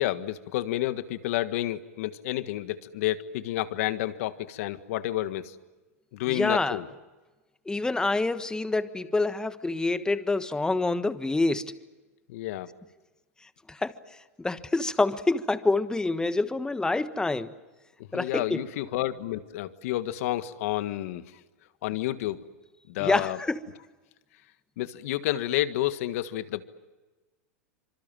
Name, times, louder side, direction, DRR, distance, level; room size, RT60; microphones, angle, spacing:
voice 1, 0.0-5.6 6.1-6.9 12.3-12.7 18.0-21.4 21.8-22.4 22.9-23.4 24.8-26.6, left 14 dB, 65° left, 12 dB, 1.6 m, -30 dB
voice 2, 6.3-6.8 7.7-11.7 13.7-14.0 14.4-17.5 18.1-18.6 23.0-23.6, left 2 dB, 10° left, 11 dB, 1.4 m, -27 dB
26.0 x 25.0 x 7.6 m, 1.2 s
hypercardioid pair, 110°, 8 cm